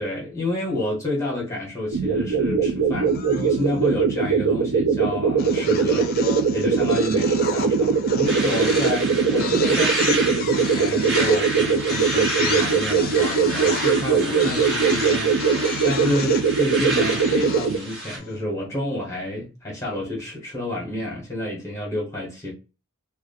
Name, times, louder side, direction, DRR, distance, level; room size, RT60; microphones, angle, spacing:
voice 1, 0.0-15.3 15.8-22.5, left 1 dB, 15° left, 1.1 m, -29 dB
sound 1, 1.9-17.8, right 5 dB, 80° right, 0.5 m, -21 dB
sound 2, 3.1-3.8 5.4-18.3, left 6 dB, 45° left, 0.4 m, -33 dB
sound 3, 8.3-18.2, right 2 dB, 50° right, 1.1 m, -30 dB
2.3 x 2.3 x 2.5 m
head